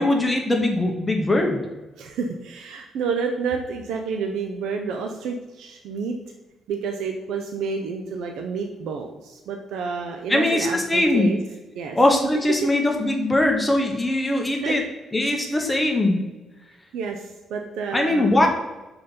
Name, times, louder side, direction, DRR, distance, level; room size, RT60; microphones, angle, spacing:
voice 1, 0.0-1.6 10.3-11.3 11.9-14.8 15.1-16.2 17.9-18.5, left 1 dB, 15° left, 1 dB, 1.0 m, -21 dB
voice 2, 2.0-6.2 6.7-11.4 11.7-12.1 12.5-12.7 14.6-14.8 15.5-15.7 16.9-18.4, right 5 dB, 80° right, 4 dB, 0.6 m, -29 dB
5.5 x 4.1 x 5.3 m, 1.1 s
cardioid pair, 90°, 0 cm